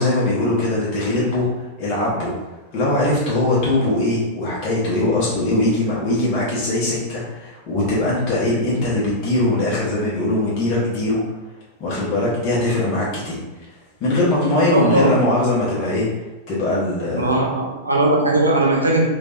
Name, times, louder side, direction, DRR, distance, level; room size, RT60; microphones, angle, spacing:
voice 1, 0.0-2.3 2.7-11.2 11.8-13.4 14.0-16.1 16.5-17.3, left 2 dB, 40° left, -7 dB, 1.1 m, -21 dB
voice 2, 14.7-15.3 17.2-19.1, right 2 dB, 80° right, -1 dB, 0.6 m, -18 dB
3.3 x 3.0 x 2.6 m, 1.1 s
figure-of-eight pair, 90°, 0 cm